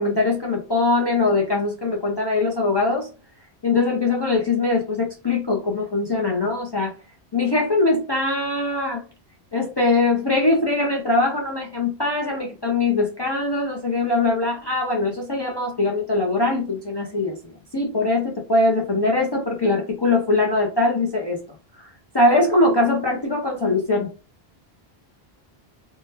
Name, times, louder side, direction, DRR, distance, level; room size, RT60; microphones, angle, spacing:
voice 1, 0.0-3.1 3.6-6.9 7.3-9.0 9.5-21.4 22.1-24.1, left 2 dB, 35° left, 0.4 m, -22 dB
3.6 x 2.1 x 2.7 m
omnidirectional pair, 1.0 m